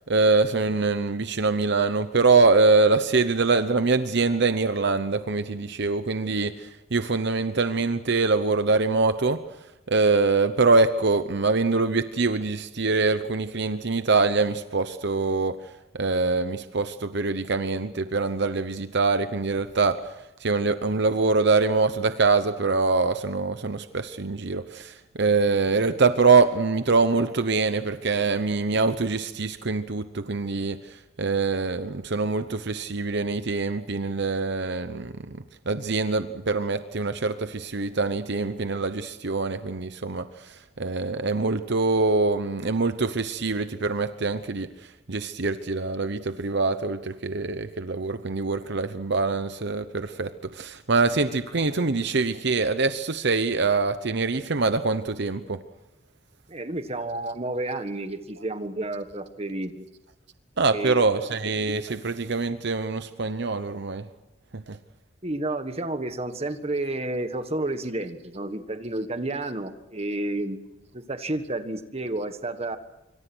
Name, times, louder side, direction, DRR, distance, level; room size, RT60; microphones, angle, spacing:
voice 1, 0.1-9.4 9.9-55.6 60.6-64.1 64.5-64.8, right 3 dB, 60° right, 10 dB, 0.9 m, -24 dB
voice 2, 56.5-59.9 60.7-61.0 65.2-70.6 70.9-72.8, right 2 dB, 30° right, 9 dB, 1.6 m, -31 dB
26.0 x 24.5 x 6.3 m, 0.96 s
head